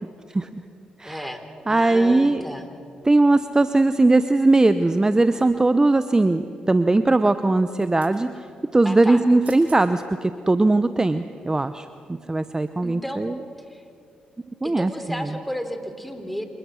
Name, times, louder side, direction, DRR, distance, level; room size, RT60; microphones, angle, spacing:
voice 1, 1.0-2.7 8.8-9.2 12.8-13.2 13.6-13.8 14.6-16.4, equal, 5° left, 7 dB, 3.4 m, -33 dB
voice 2, 1.7-2.4 3.0-8.3 8.7-13.3 14.6-14.9, right 2 dB, 20° right, 11 dB, 0.8 m, -19 dB
sound 1, 5.2-5.8 7.5-8.2 9.2-9.3 9.4-9.8 10.4-10.5, right 6 dB, 60° right, 4.4 m, -50 dB
27.0 x 20.5 x 6.4 m, 2.4 s
supercardioid pair, 50°, 3 cm